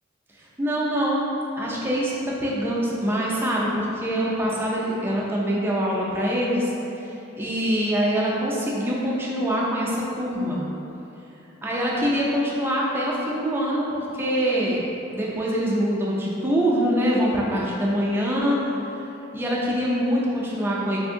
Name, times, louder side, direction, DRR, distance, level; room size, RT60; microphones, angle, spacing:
voice 1, 0.4-1.3 1.6-6.7 7.0-10.7 11.6-14.8 15.1-18.7 19.3-21.0, equal, 10° right, -5 dB, 0.3 m, -24 dB
3.4 x 2.6 x 2.6 m, 2.9 s
head